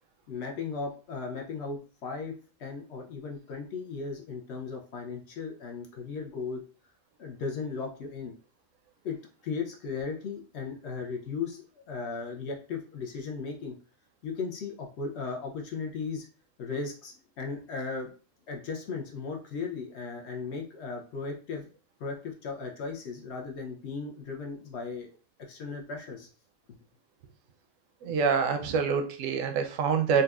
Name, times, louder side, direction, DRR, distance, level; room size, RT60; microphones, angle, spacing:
voice 1, 0.3-2.3 2.6-6.6 7.2-8.3 9.0-9.2 9.4-13.7 14.2-16.3 16.6-18.1 18.5-21.7 22.0-25.1 25.4-26.3, left 4 dB, 75° left, 1 dB, 0.6 m, -36 dB
voice 2, 28.0-30.2, right 6 dB, 70° right, 5 dB, 0.8 m, -26 dB
4.0 x 2.2 x 2.3 m, 0.39 s
omnidirectional pair, 1.7 m